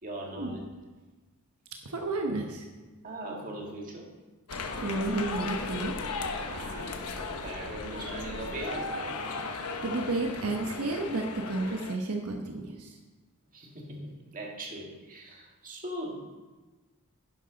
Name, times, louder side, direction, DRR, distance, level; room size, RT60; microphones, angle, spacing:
voice 1, 0.0-0.7 3.0-4.1 6.4-9.0 13.5-16.2, right 1 dB, 40° right, -1 dB, 2.1 m, -40 dB
voice 2, 1.8-2.7 4.8-5.9 9.3-13.0, right 2 dB, 80° right, 2 dB, 1.1 m, -32 dB
sound 1, 4.5-12.0, left 3 dB, 90° left, 1.1 m, -36 dB
11.5 x 10.5 x 4.0 m, 1.3 s
head